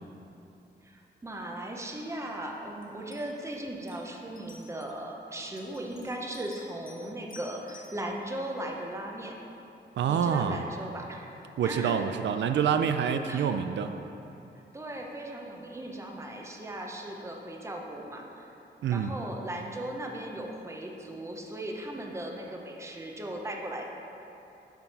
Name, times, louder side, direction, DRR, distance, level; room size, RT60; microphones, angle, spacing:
voice 1, 0.8-9.4 10.1-11.3 11.6-12.0 13.3-13.5 14.7-18.5 18.9-23.9, right 1 dB, 15° right, 0 dB, 0.7 m, -38 dB
sound 1, 2.8-2.9 3.1-3.6 3.9-4.0 4.4-4.9 5.6-7.0 7.3-7.9, left 3 dB, 50° left, 1.4 m, -51 dB
voice 2, 10.0-10.6 11.6-13.9 18.8-19.1, right 7 dB, 85° right, 8 dB, 0.4 m, -27 dB
9.1 x 4.8 x 5.4 m, 2.9 s
wide cardioid pair, 165°, 18 cm